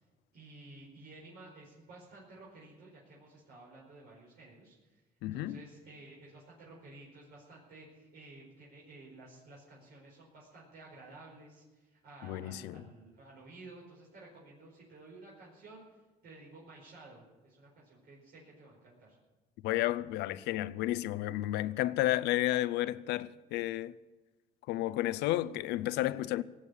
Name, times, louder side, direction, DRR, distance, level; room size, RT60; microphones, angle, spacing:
voice 1, 0.3-5.0 5.3-19.2, right 2 dB, 65° right, 4.9 m, -53 dB
voice 2, 5.2-5.6 12.2-12.8 19.6-23.9 24.7-26.4, left 15 dB, 90° left, 0.6 m, -32 dB
18.5 x 8.1 x 8.3 m
cardioid pair, 110°, 17 cm